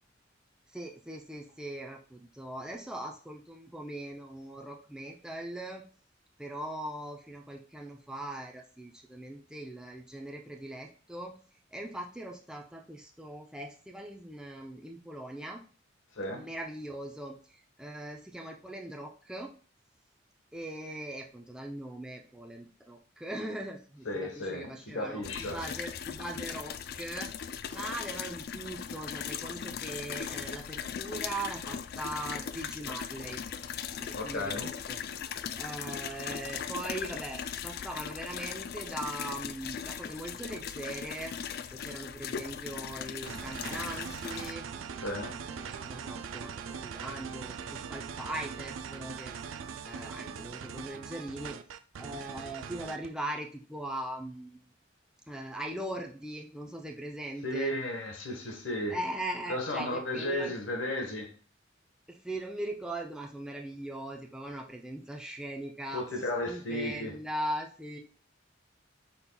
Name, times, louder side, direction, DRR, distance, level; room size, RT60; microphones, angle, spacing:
voice 1, 0.7-5.8 6.4-11.3 11.7-15.6 16.3-17.4 17.8-19.5 20.5-27.3 27.7-33.4 34.0-35.0 35.6-41.3 41.7-44.7 45.5-49.4 49.9-51.6 52.0-54.7 55.3-57.7 58.9-60.5 62.1-66.1 66.5-68.0, right 1 dB, 5° right, 0.5 m, -40 dB
voice 2, 24.0-25.6 34.1-34.7 45.0-45.4 57.4-59.0 59.5-61.3 65.9-67.2, left 1 dB, 80° left, 1.2 m, -34 dB
sound 1, 25.2-44.5, left 8 dB, 55° left, 0.3 m, -39 dB
sound 2, 43.2-53.1, right 6 dB, 85° right, 0.4 m, -41 dB
5.4 x 4.3 x 2.3 m
head